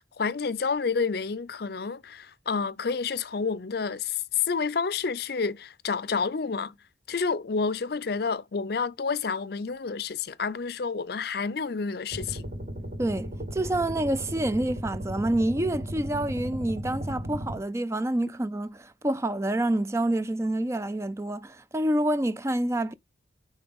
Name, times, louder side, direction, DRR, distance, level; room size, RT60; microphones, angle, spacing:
voice 1, 0.2-6.8 7.1-12.4, left 5 dB, 55° left, 0.5 m, -29 dB
sound 1, 12.1-17.6, equal, 40° right, 1.4 m, -36 dB
voice 2, 13.0-22.9, right 1 dB, 15° right, 0.4 m, -27 dB
9.6 x 3.8 x 3.6 m
head